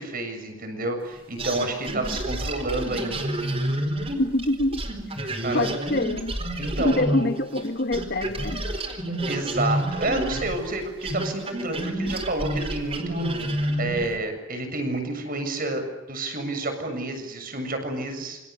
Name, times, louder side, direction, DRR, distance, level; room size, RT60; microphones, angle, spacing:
voice 1, 0.0-3.3 5.4-5.9 6.6-7.3 9.1-13.3 13.8-18.4, right 2 dB, 45° right, 7.3 m, -29 dB
sound 1, 1.4-7.7 7.9-14.2, right 1 dB, 30° right, 4.4 m, -29 dB
voice 2, 4.2-4.8 5.5-6.4 6.8-8.6, left 1 dB, 55° left, 1.4 m, -25 dB
28.0 x 27.5 x 6.9 m
head